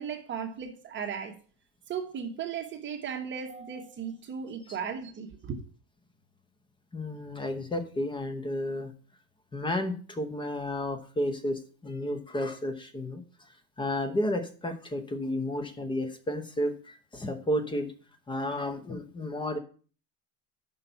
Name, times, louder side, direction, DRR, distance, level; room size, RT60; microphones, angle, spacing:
voice 1, 0.0-1.3 1.9-5.6, right 7 dB, 35° right, 1.1 m, -36 dB
voice 2, 6.9-8.9 9.5-13.2 13.8-17.9 18.3-19.6, left 1 dB, 15° left, 1.0 m, -32 dB
5.9 x 5.6 x 6.9 m
cardioid pair, 150°, 34 cm